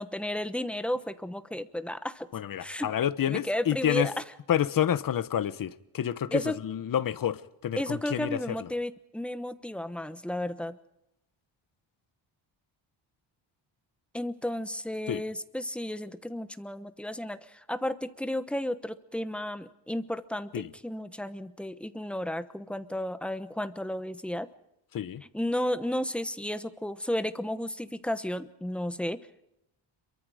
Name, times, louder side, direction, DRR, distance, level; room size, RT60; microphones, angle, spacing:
voice 1, 0.0-2.3 2.6-2.9 3.3-4.1 6.3-6.6 7.8-10.8 14.1-24.5 25.3-29.2, left 1 dB, ahead, 1.0 m, -33 dB
voice 2, 2.3-4.1 4.5-8.7 15.1-15.2 20.5-20.7 24.9-25.2, left 10 dB, 45° left, 1.1 m, -29 dB
27.5 x 23.5 x 5.0 m
cardioid pair, 145°, 49 cm